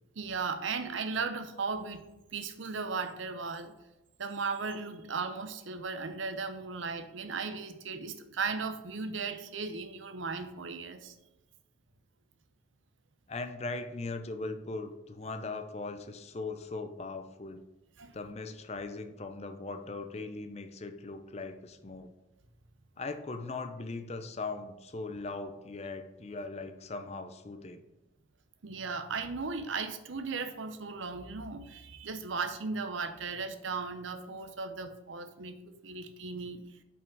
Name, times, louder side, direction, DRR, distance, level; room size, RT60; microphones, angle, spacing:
voice 1, 0.2-2.0 2.3-3.7 4.2-11.1 18.0-18.1 28.6-36.6, right 4 dB, 75° right, 9 dB, 0.7 m, -36 dB
voice 2, 13.3-17.6 18.1-22.1 23.0-27.8, left 3 dB, 30° left, 8 dB, 0.5 m, -39 dB
5.9 x 5.3 x 4.6 m, 1.0 s
head